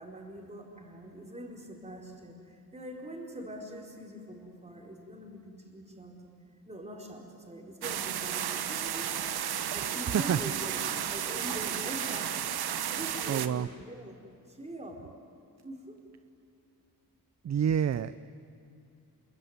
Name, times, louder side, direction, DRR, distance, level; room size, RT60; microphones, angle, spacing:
voice 1, 0.0-6.3 6.7-10.8 11.1-12.4 12.9-14.2 14.5-15.1 15.6-16.0, right 1 dB, 15° right, 1 dB, 4.5 m, -43 dB
sound 1, 7.8-13.5, right 9 dB, 85° right, 1.2 m, -33 dB
voice 2, 13.3-13.7 17.4-18.3, right 8 dB, 45° right, 14 dB, 0.6 m, -28 dB
28.0 x 22.0 x 9.5 m, 2.5 s
wide cardioid pair, 110°, 37 cm